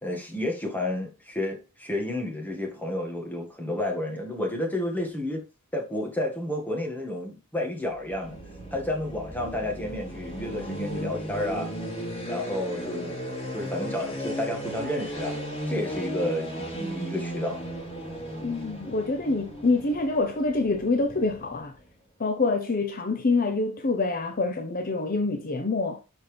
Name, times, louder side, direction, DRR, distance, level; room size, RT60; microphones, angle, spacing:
voice 1, 0.0-5.4 5.7-8.4 8.7-11.7 12.3-13.1 13.5-15.4 15.7-17.6, left 1 dB, 10° left, 1.9 m, -31 dB
sound 1, 7.9-21.8, equal, 25° left, 2.6 m, -36 dB
voice 2, 18.4-21.7 22.2-26.0, left 3 dB, 40° left, 0.8 m, -26 dB
12.0 x 4.4 x 3.4 m
head